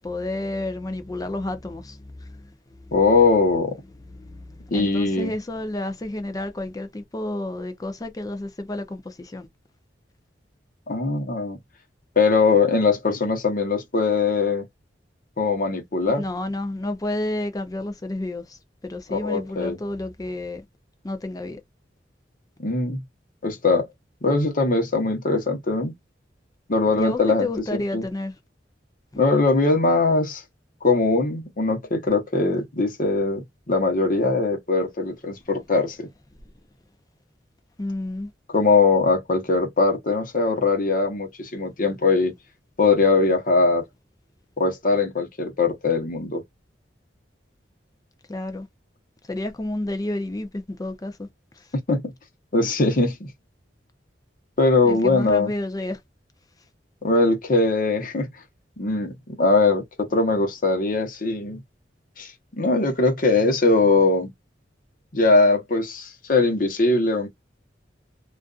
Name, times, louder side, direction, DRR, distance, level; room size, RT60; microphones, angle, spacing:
voice 1, 0.0-2.5 2.9-3.0 4.1-9.5 16.1-18.6 18.8-20.6 21.0-21.6 27.0-28.3 37.8-38.3 48.3-48.7 49.3-51.3 51.6-51.7 54.8-56.0, left 1 dB, 20° left, 0.5 m, -30 dB
voice 2, 2.9-3.7 4.7-5.3 10.9-11.6 12.2-14.7 15.4-16.2 19.1-19.8 22.6-23.0 23.4-23.9 24.2-25.9 26.7-28.0 29.2-30.4 30.8-36.1 38.5-42.3 42.8-43.8 44.6-46.4 51.9-52.0 52.5-53.3 54.6-55.5 57.0-58.3 58.8-61.6 62.2-64.3 65.1-67.3, left 3 dB, 50° left, 0.9 m, -21 dB
2.5 x 2.4 x 2.4 m
head